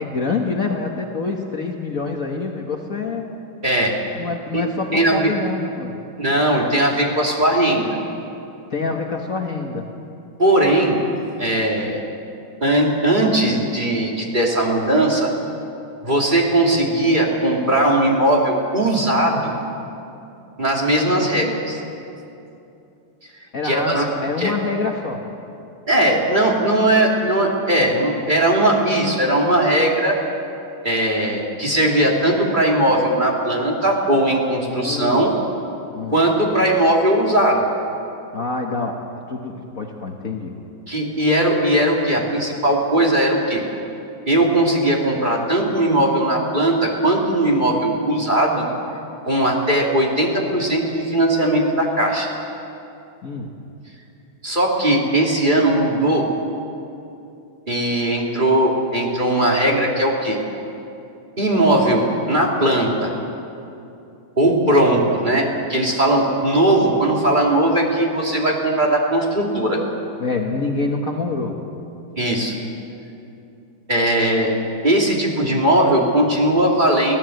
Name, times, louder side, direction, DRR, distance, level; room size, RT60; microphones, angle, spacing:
voice 1, 0.0-3.2 4.2-6.0 8.7-9.9 21.1-21.3 23.5-25.2 34.7-35.2 35.9-36.2 38.3-39.0 39.3-40.5 53.2-53.5 70.2-71.6, left 4 dB, 45° left, 1 dB, 1.6 m, -26 dB
voice 2, 3.6-3.9 4.5-4.6 4.9-5.3 6.2-8.0 10.4-11.0 11.4-12.0 12.6-15.3 16.0-19.5 20.6-21.8 23.6-24.0 24.4-24.6 25.9-30.2 30.8-35.3 36.1-37.6 40.9-43.6 44.3-48.6 49.3-52.3 54.4-56.2 57.7-60.4 61.4-63.1 64.4-69.8 72.2-72.5 73.9-74.5 74.8-77.2, right 1 dB, 20° right, -2 dB, 2.8 m, -18 dB
25.0 x 17.0 x 7.8 m, 2.7 s
omnidirectional pair, 2.3 m